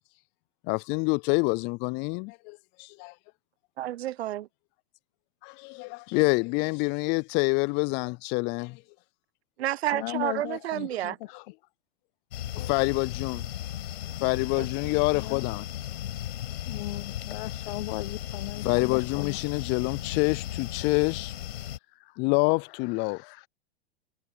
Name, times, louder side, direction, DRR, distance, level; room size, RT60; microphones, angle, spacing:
voice 1, 0.6-3.1 5.4-8.8 12.5-13.4 14.2-15.7 18.6-21.3 22.2-23.2, left 29 dB, 35° left, 0.5 m, -27 dB
voice 2, 3.8-4.5 9.6-11.2 14.6-14.7, right 13 dB, 70° right, 1.0 m, -30 dB
voice 3, 9.9-11.4 15.1-15.5 16.6-19.4 22.0-22.1 23.1-23.5, left 21 dB, 55° left, 1.1 m, -37 dB
sound 1, 12.3-21.8, left 12 dB, 70° left, 7.2 m, -36 dB
hypercardioid pair, 105°, 33 cm